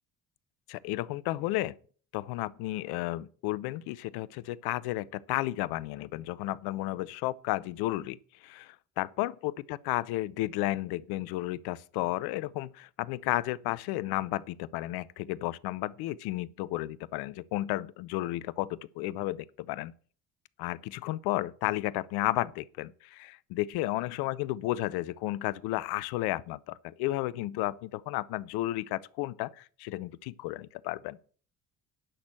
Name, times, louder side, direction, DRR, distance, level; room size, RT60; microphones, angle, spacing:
voice 1, 0.7-1.7 2.1-19.9 20.6-31.2, left 17 dB, 65° left, 0.7 m, -33 dB
10.0 x 6.2 x 7.6 m
hypercardioid pair, 55°, 41 cm